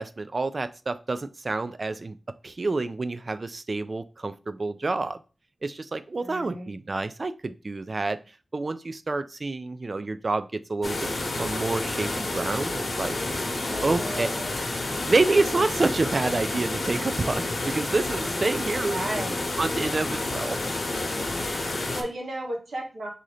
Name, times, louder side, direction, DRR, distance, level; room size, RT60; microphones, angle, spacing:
voice 1, 0.0-2.2 2.4-5.2 5.6-8.2 8.5-11.1 11.4-13.1 13.8-14.3 15.1-19.0 19.6-20.6, right 3 dB, 45° right, 12 dB, 0.3 m, -28 dB
voice 2, 6.2-6.7 13.7-14.6 18.9-19.5 21.7-23.1, right 1 dB, 90° right, 0 dB, 1.2 m, -34 dB
sound 1, 10.8-22.0, left 2 dB, 60° left, 0.9 m, -29 dB
3.8 x 2.8 x 4.8 m, 0.34 s
wide cardioid pair, 100°, 0 cm